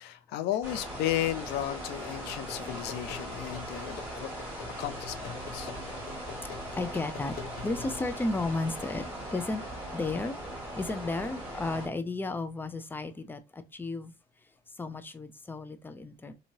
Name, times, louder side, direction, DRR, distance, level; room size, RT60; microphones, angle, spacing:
voice 1, 0.0-4.3 4.8-5.7, left 13 dB, 90° left, 0.4 m, -34 dB
sound 1, 0.6-11.9, right 1 dB, 10° right, 1.8 m, -39 dB
sound 2, 2.3-8.0, left 8 dB, 65° left, 0.9 m, -45 dB
voice 2, 6.8-7.3 7.6-9.0 9.3-9.6 9.9-10.3 10.7-14.1 14.8-16.3, left 2 dB, 10° left, 0.4 m, -33 dB
2.9 x 2.7 x 2.6 m
cardioid pair, 110°, 17 cm